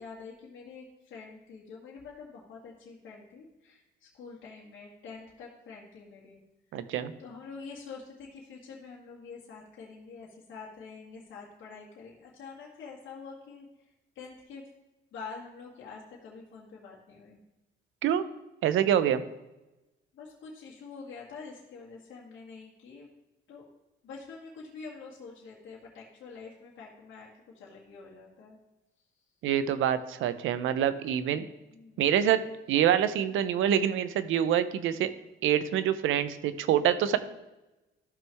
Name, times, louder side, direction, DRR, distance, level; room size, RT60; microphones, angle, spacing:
voice 1, 0.0-6.4 6.7-6.9 7.2-14.6 15.1-17.4 20.1-23.1 23.5-23.7 24.0-27.3 27.5-28.6 31.4-32.1, left 5 dB, 75° left, -5 dB, 2.1 m, -46 dB
voice 2, 6.7-7.1 18.0-18.2 18.6-19.2 29.4-31.5 32.0-32.4 32.7-35.1 35.4-37.2, right 10 dB, 85° right, 13 dB, 0.7 m, -26 dB
14.0 x 6.1 x 3.5 m, 1.0 s
cardioid pair, 90°, 20 cm